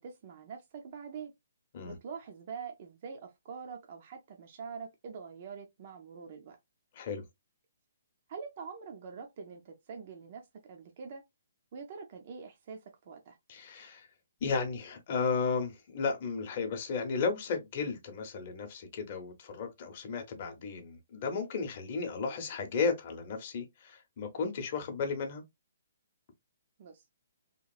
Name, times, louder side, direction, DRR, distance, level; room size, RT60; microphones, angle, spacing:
voice 1, 0.0-1.3 1.8-6.6 8.3-11.2 11.7-13.4 26.8-27.0, right 5 dB, 35° right, 0.4 m, -45 dB
voice 2, 13.5-14.1 14.4-25.4, left 5 dB, 35° left, 0.7 m, -34 dB
2.9 x 2.3 x 2.2 m
hypercardioid pair, 170°, 0 cm